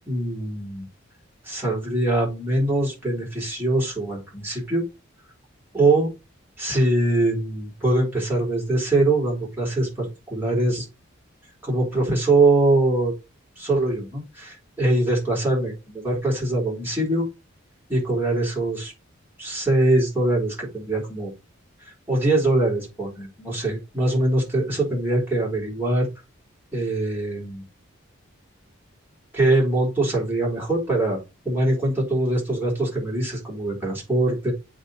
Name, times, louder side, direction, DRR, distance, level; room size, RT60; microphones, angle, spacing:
voice 1, 0.1-0.9 1.5-4.8 5.7-6.1 6.6-10.9 11.6-13.1 13.6-17.2 17.9-18.9 19.4-21.3 22.1-26.1 26.7-27.6 29.3-31.2 31.4-34.5, right 2 dB, 10° right, -4 dB, 4.6 m, -23 dB
7.9 x 3.7 x 6.7 m, 0.27 s
head